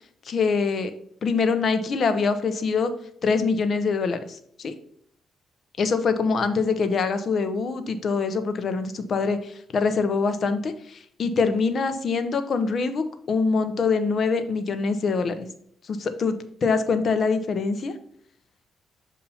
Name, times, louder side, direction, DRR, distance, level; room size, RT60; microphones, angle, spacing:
voice 1, 0.3-0.9 1.2-2.9 3.2-4.7 5.8-15.5 15.8-16.3 16.6-17.9, left 4 dB, 50° left, 9 dB, 0.7 m, -24 dB
7.0 x 2.8 x 5.6 m, 0.64 s
cardioid pair, 90°, 0 cm